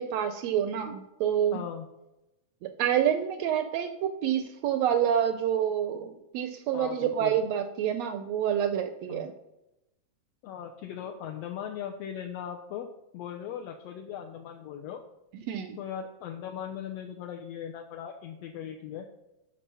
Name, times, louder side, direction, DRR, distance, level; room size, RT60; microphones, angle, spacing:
voice 1, 0.0-1.6 2.6-9.3 15.3-15.8, right 9 dB, 80° right, 9 dB, 1.5 m, -28 dB
voice 2, 1.5-1.9 6.7-7.4 9.1-9.3 10.4-12.9 13.1-15.0 15.8-19.1, left 9 dB, 75° left, 3 dB, 1.5 m, -38 dB
8.5 x 5.4 x 5.5 m, 0.93 s
omnidirectional pair, 3.4 m